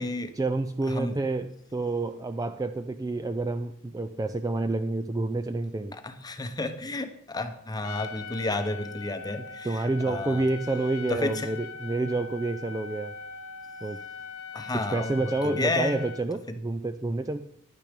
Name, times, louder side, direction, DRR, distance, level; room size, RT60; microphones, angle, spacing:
voice 1, 0.3-6.0 9.4-13.1 13.8-14.0 14.9-17.5, right 2 dB, 15° right, 10 dB, 0.3 m, -29 dB
voice 2, 5.9-10.4 11.1-11.5 14.5-16.0, left 2 dB, 20° left, 8 dB, 0.8 m, -31 dB
Trumpet, 7.8-16.3, left 5 dB, 70° left, 0.7 m, -41 dB
10.5 x 9.0 x 5.1 m, 0.69 s
head